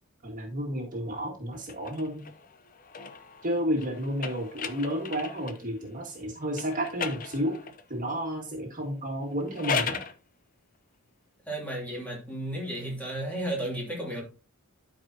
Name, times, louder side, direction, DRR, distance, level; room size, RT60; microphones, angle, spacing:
voice 1, 0.2-2.2 3.4-7.6 7.9-10.0, equal, 40° right, 1.8 m, -31 dB
sound 1, 1.6-5.7 6.5-7.9 9.3-10.2, left 6 dB, 40° left, 0.7 m, -36 dB
voice 2, 11.5-14.2, right 1 dB, 5° left, 3.0 m, -33 dB
12.0 x 4.9 x 2.8 m
head